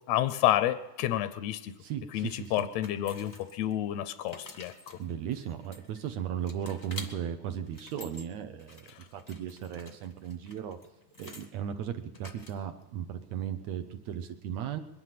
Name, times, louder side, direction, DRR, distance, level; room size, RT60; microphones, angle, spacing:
voice 1, 0.1-1.7 2.1-5.0 8.9-9.1, left 13 dB, 80° left, 13 dB, 1.6 m, -30 dB
voice 2, 1.8-2.7 5.0-10.8 11.2-14.8, right 9 dB, 75° right, 8 dB, 1.7 m, -36 dB
sound 1, 2.2-3.7 4.1-6.1 6.5-7.1 7.6-8.2 8.6-11.5 12.1-12.8, left 2 dB, 30° left, 0.7 m, -49 dB
22.0 x 11.0 x 5.8 m, 1.0 s
omnidirectional pair, 3.6 m